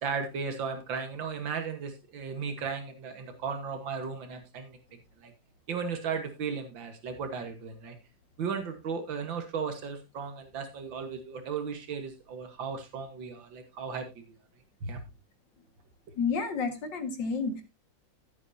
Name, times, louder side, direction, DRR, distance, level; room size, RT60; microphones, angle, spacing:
voice 1, 0.0-4.8 5.2-5.3 5.7-8.0 8.4-14.2 14.8-15.0, right 6 dB, 90° right, 6 dB, 2.2 m, -35 dB
voice 2, 16.2-17.6, left 5 dB, 75° left, 7 dB, 2.5 m, -30 dB
15.0 x 8.1 x 2.7 m, 0.24 s
omnidirectional pair, 2.0 m